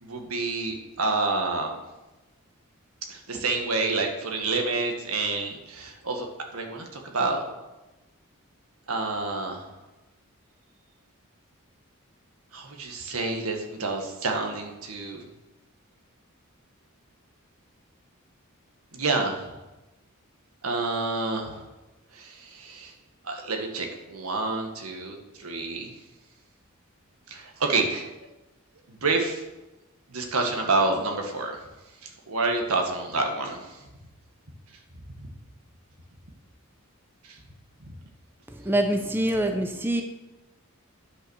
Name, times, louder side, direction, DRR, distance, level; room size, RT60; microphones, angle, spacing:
voice 1, 0.0-1.8 3.1-6.3 6.5-6.9 7.1-7.4 8.9-9.6 12.5-15.2 18.9-19.5 20.6-21.6 22.1-22.9 23.2-25.9 27.3-28.1 29.0-29.4 30.1-31.6 32.0-33.6 35.2-35.3 37.3-37.4, right 3 dB, 80° right, 3 dB, 1.7 m, -28 dB
voice 2, 38.5-40.0, right 1 dB, 10° right, 5 dB, 0.6 m, -25 dB
10.0 x 5.8 x 6.4 m, 1.0 s
head